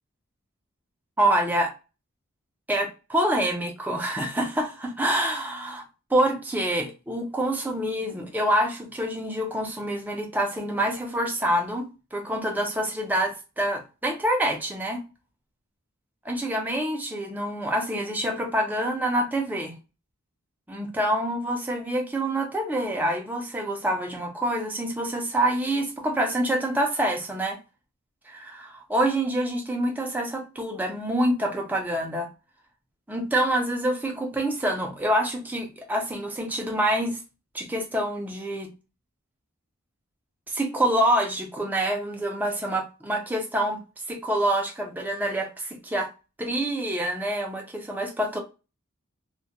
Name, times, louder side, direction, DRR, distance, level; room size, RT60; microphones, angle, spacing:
voice 1, 1.2-1.7 2.7-5.8 6.1-15.0 16.3-19.7 20.7-27.6 28.3-32.3 33.1-37.2 37.5-38.7 40.5-43.8 44.1-46.1 46.4-48.4, right 1 dB, 10° right, 0.4 m, -26 dB
2.2 x 2.1 x 2.7 m
head